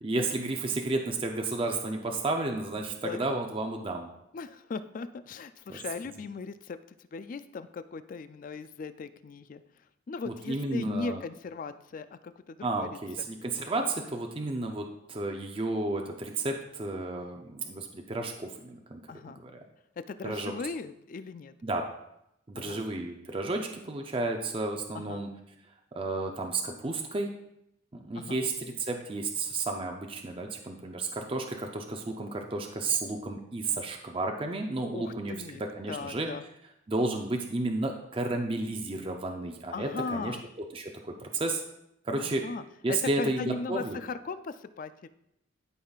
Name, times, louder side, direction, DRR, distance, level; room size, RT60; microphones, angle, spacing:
voice 1, 0.0-4.1 5.7-5.8 10.2-11.2 12.6-19.0 19.4-19.6 20.2-20.5 21.6-21.9 22.5-25.3 25.9-27.3 27.9-36.3 36.9-40.4 40.7-41.6 42.0-42.4 42.8-44.0, right 2 dB, 25° right, 2 dB, 0.5 m, -32 dB
voice 2, 3.0-3.4 4.3-6.8 7.1-9.6 10.1-13.0 19.1-19.4 20.1-21.5 22.6-22.8 24.9-25.2 28.2-28.4 34.9-35.6 35.9-36.4 39.7-40.4 42.2-45.1, left 4 dB, 45° left, 13 dB, 0.3 m, -38 dB
12.0 x 5.6 x 2.4 m, 0.81 s
head